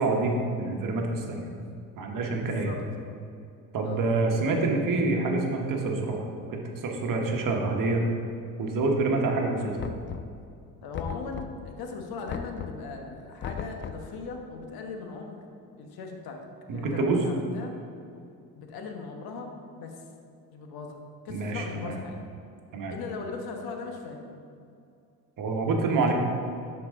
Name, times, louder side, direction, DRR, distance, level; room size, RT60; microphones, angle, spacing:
voice 1, 0.0-1.5 2.0-2.7 3.7-8.0 8.6-9.8 16.7-17.2 21.3-22.0 22.7-22.9 25.4-26.1, right 3 dB, 55° right, 1 dB, 1.2 m, -27 dB
voice 2, 2.4-3.2 3.8-4.1 10.8-15.4 15.8-16.4 16.7-17.7 18.5-20.0 20.5-22.2 22.9-24.3 25.9-26.1, left 4 dB, 70° left, 3 dB, 1.3 m, -39 dB
Knock, 9.8-10.5 10.9-11.7 12.3-12.9 13.4-14.1, left 7 dB, 30° left, 0.4 m, -37 dB
11.5 x 4.7 x 3.7 m, 2.4 s
supercardioid pair, 80°, 38 cm